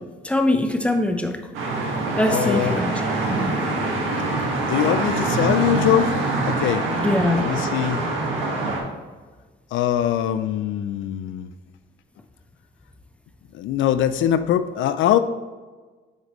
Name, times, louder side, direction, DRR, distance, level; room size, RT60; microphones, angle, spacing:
voice 1, 0.2-1.4 2.2-2.9 3.3-3.5 7.0-7.4, left 1 dB, 5° left, 5 dB, 0.8 m, -22 dB
sound 1, 1.5-8.8, right 2 dB, 85° right, 1.6 m, -24 dB
voice 2, 2.3-2.8 4.7-6.2 6.4-6.9 7.4-8.0 9.7-11.5 13.5-15.2, left 11 dB, 75° left, 11 dB, 0.4 m, -22 dB
8.2 x 5.0 x 3.1 m, 1.4 s
cardioid pair, 90°, 20 cm